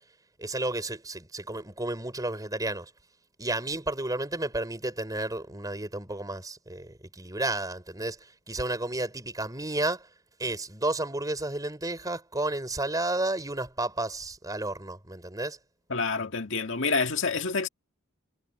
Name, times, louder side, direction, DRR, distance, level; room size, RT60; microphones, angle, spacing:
voice 1, 0.4-2.9 3.4-10.1 10.4-15.6, right 2 dB, 15° right, 4.8 m, -32 dB
voice 2, 15.9-17.7, left 4 dB, 60° left, 2.1 m, -28 dB
head